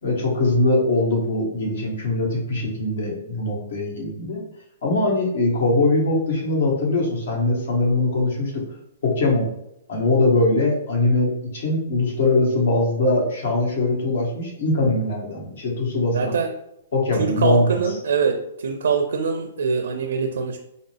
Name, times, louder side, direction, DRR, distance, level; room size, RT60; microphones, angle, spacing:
voice 1, 0.0-4.4 4.8-8.6 9.0-9.5 9.9-16.3 16.9-18.0, left 2 dB, 70° left, -1 dB, 1.4 m, -21 dB
voice 2, 16.1-16.5 17.2-18.4 18.6-20.6, right 5 dB, 80° right, 5 dB, 0.4 m, -23 dB
4.7 x 2.1 x 3.3 m, 0.81 s
hypercardioid pair, 140°, 0 cm